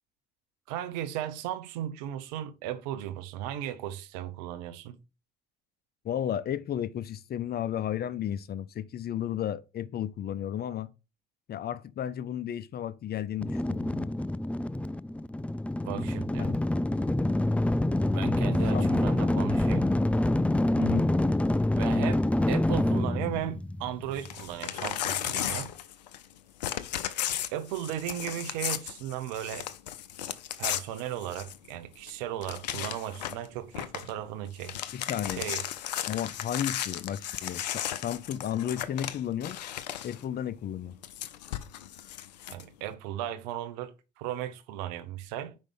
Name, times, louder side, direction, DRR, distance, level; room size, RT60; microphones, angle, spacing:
voice 1, 0.7-5.0 15.8-16.5 18.1-19.9 21.7-25.7 27.5-29.7 30.6-34.8 35.3-35.7 42.5-45.6, right 11 dB, 80° right, 0.8 m, -36 dB
voice 2, 6.0-10.9 11.5-14.1 16.4-16.6 18.7-18.9 19.3-19.5 20.7-21.1 34.9-35.4 36.1-39.6 40.0-40.9, left 10 dB, 50° left, 0.7 m, -33 dB
sound 1, 13.4-24.4, left 1 dB, 5° left, 0.4 m, -26 dB
Crumpling crinkling / Tearing, 24.1-26.3 26.6-31.7 32.1-32.2 32.4-33.5 33.7-34.1 34.5-40.2 41.0-42.6, left 11 dB, 90° left, 0.5 m, -35 dB
5.3 x 5.2 x 5.5 m
hypercardioid pair, 50°, 21 cm